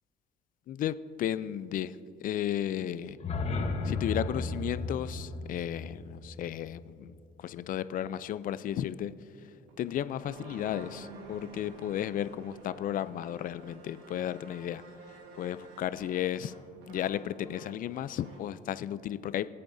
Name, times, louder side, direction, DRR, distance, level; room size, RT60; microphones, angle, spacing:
voice 1, 0.7-2.0 2.2-3.2 3.8-9.1 9.8-14.8 15.4-16.6 16.9-19.5, left 11 dB, 55° left, 15 dB, 0.5 m, -34 dB
sound 1, 3.1-7.1, left 3 dB, 40° left, 1.1 m, -35 dB
sound 2, 9.7-18.6, right 3 dB, 90° right, 1.6 m, -50 dB
24.5 x 8.6 x 2.7 m, 2.6 s
cardioid pair, 110°, 17 cm